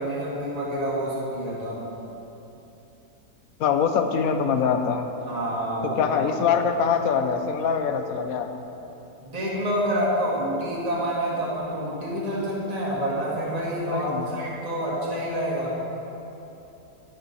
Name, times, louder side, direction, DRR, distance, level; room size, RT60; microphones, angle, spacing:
voice 1, 0.0-1.8 5.3-6.4 9.2-15.8, equal, 25° right, -6 dB, 1.9 m, -28 dB
voice 2, 3.6-5.1 5.8-8.5 13.9-14.3, left 6 dB, 70° left, 7 dB, 1.1 m, -24 dB
10.5 x 9.9 x 4.1 m, 3.0 s
omnidirectional pair, 1.7 m